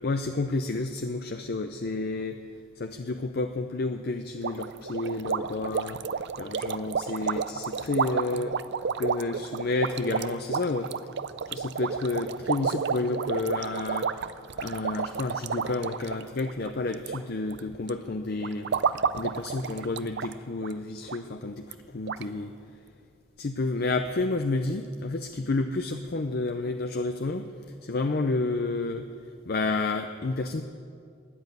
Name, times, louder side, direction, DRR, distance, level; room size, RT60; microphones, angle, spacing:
voice 1, 0.0-2.4 2.8-6.0 6.4-8.6 9.0-10.9 11.5-14.2 14.6-22.6 23.4-27.5 27.8-29.1 29.5-30.6, left 3 dB, 50° left, 7 dB, 0.6 m, -30 dB
sound 1, 4.4-17.2 17.5-17.9 18.4-20.3 20.6-20.7 21.1-21.2 21.7-21.8 22.1-22.2, right 6 dB, 60° right, 0.4 m, -31 dB
13.5 x 10.5 x 9.3 m, 2.3 s
head